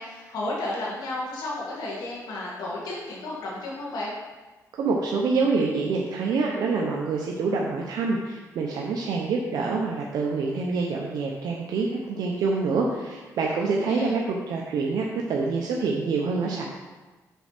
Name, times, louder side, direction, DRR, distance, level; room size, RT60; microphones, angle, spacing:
voice 1, 0.0-4.1 13.6-14.2, left 2 dB, 90° left, -5 dB, 2.1 m, -33 dB
voice 2, 4.8-16.7, right 4 dB, 80° right, -1 dB, 0.8 m, -26 dB
6.9 x 4.6 x 5.9 m, 1.2 s
cardioid pair, 90°, 7 cm